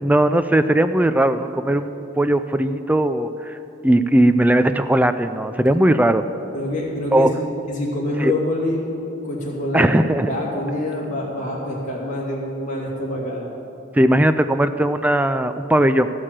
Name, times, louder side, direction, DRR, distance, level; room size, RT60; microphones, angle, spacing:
voice 1, 0.0-3.6 3.8-6.3 7.1-7.3 8.2-8.3 9.7-10.3 13.9-16.1, right 1 dB, 10° right, 10 dB, 0.3 m, -18 dB
voice 2, 6.5-8.9 9.2-13.5, left 1 dB, 40° left, -4 dB, 2.5 m, -26 dB
14.0 x 6.5 x 7.4 m, 2.8 s
head